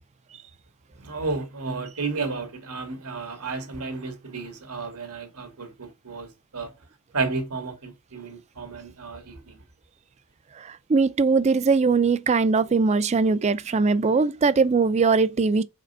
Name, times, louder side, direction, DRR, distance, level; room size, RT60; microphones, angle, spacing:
voice 1, 1.0-6.7 7.1-9.6, right 4 dB, 85° right, 1.8 m, -32 dB
voice 2, 10.6-15.6, right 4 dB, 30° right, 0.4 m, -21 dB
5.1 x 4.3 x 5.3 m
head